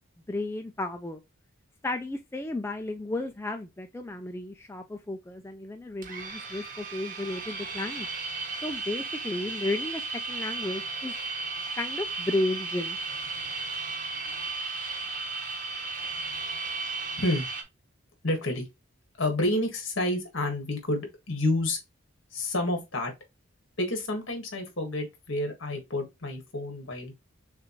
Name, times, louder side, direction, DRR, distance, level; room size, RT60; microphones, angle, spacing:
voice 1, 0.3-1.2 1.8-8.1 8.6-10.0 10.3-11.1 11.7-13.0, left 2 dB, 10° left, 0.3 m, -33 dB
sound 1, 6.0-17.6, right 3 dB, 40° right, 1.1 m, -35 dB
voice 2, 18.2-18.7 19.2-21.8 22.3-23.1 23.8-27.1, left 1 dB, 60° left, 1.7 m, -29 dB
6.5 x 2.5 x 3.0 m
head